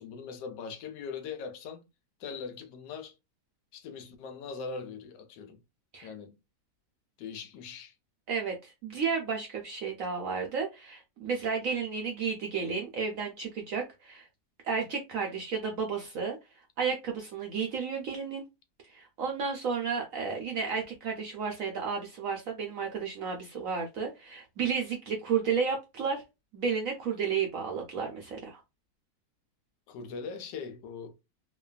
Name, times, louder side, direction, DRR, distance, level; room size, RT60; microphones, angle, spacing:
voice 1, 0.0-1.8 2.2-3.2 3.7-5.6 6.0-6.4 7.2-7.9 29.9-31.1, left 5 dB, 80° left, 1.2 m, -41 dB
voice 2, 8.3-14.3 14.6-18.4 18.8-26.2 26.5-28.6, right 6 dB, 70° right, 0.8 m, -32 dB
3.0 x 2.2 x 2.3 m
omnidirectional pair, 1.9 m